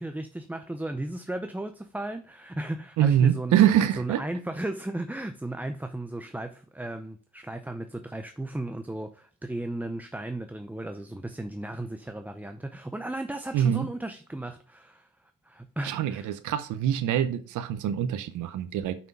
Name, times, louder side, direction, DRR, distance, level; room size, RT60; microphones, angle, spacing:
voice 1, 0.0-3.6 3.9-15.1 15.4-16.3, right 1 dB, 5° right, 0.5 m, -35 dB
voice 2, 3.0-4.2 13.5-13.9 15.8-18.9, right 10 dB, 80° right, 0.8 m, -24 dB
6.1 x 5.4 x 4.7 m
cardioid pair, 90°, 30 cm